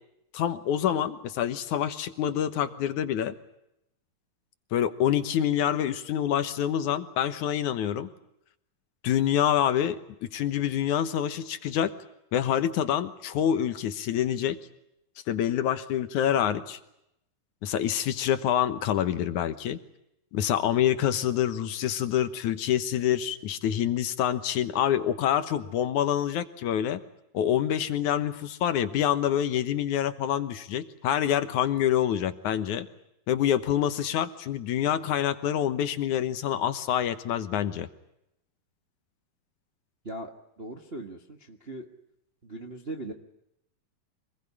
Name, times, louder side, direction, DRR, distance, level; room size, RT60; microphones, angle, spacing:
voice 1, 0.3-3.3 4.7-8.1 9.0-11.9 12.3-14.6 15.3-16.8 17.6-19.8 20.3-27.0 27.3-32.9 33.3-37.9, left 10 dB, 70° left, 11 dB, 2.4 m, -26 dB
voice 2, 40.0-41.9 42.4-43.1, right 1 dB, 30° right, 3 dB, 1.0 m, -39 dB
25.5 x 20.5 x 9.8 m, 0.81 s
omnidirectional pair, 3.9 m